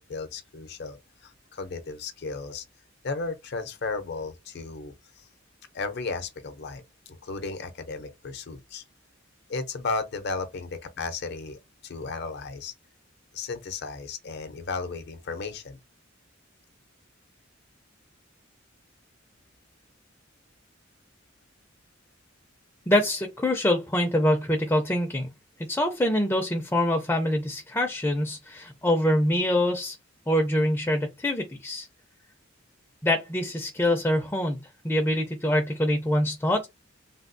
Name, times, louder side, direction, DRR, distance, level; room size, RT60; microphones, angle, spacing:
voice 1, 0.0-2.6 3.0-5.3 5.7-8.8 9.5-12.7 13.3-15.8, left 4 dB, 55° left, 0.6 m, -34 dB
voice 2, 22.9-25.3 25.6-30.0 30.3-31.9 33.0-34.6 34.8-36.7, left 1 dB, 10° left, 0.5 m, -25 dB
3.4 x 2.3 x 2.6 m
head